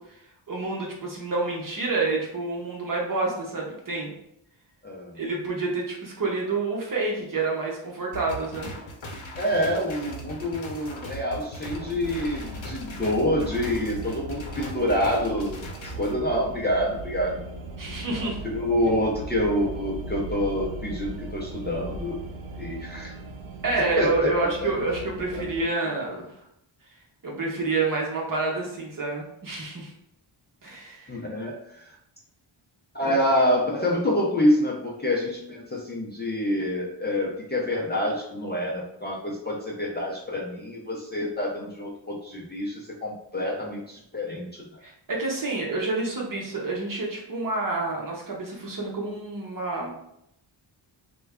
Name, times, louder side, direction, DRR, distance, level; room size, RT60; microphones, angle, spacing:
voice 1, 0.5-4.1 5.2-8.7 17.8-18.4 22.6-22.8 23.6-26.3 27.2-29.9 30.6-31.2 33.0-33.2 44.8-49.9, right 3 dB, 40° right, -2 dB, 0.9 m, -28 dB
voice 2, 4.8-5.2 9.4-15.7 16.0-17.4 18.1-22.2 22.6-23.1 24.0-24.9 25.3-25.4 26.1-26.2 31.1-31.9 32.9-44.8, left 1 dB, 20° left, -4 dB, 0.5 m, -27 dB
sound 1, 8.1-16.1, equal, 65° left, 0.8 m, -39 dB
sound 2, 11.6-25.6, right 2 dB, 70° right, 0.6 m, -39 dB
3.2 x 2.3 x 3.5 m, 0.77 s
wide cardioid pair, 145°, 49 cm